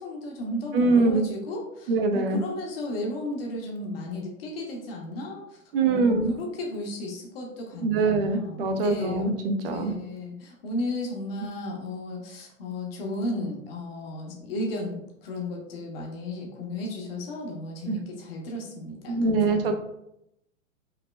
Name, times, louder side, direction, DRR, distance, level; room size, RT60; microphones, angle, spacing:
voice 1, 0.0-9.2 9.6-19.7, left 1 dB, 45° left, 0 dB, 1.0 m, -34 dB
voice 2, 0.7-1.2 1.9-2.4 5.7-6.3 7.8-9.9 17.9-18.0 19.1-19.7, right 3 dB, 45° right, 6 dB, 0.7 m, -23 dB
5.7 x 2.9 x 2.2 m, 0.81 s
figure-of-eight pair, 110°, 41 cm